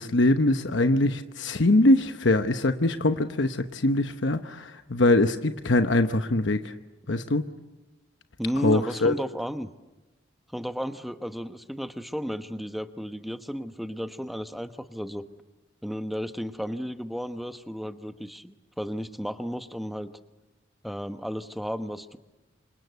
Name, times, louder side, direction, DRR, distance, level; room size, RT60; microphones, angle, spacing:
voice 1, 0.0-6.7 7.1-7.5 8.6-9.1, left 2 dB, 70° left, 8 dB, 1.0 m, -23 dB
voice 2, 8.4-9.7 10.5-15.3 15.8-20.1 20.8-22.2, equal, ahead, 9 dB, 1.0 m, -33 dB
28.0 x 26.0 x 8.2 m, 1.1 s
head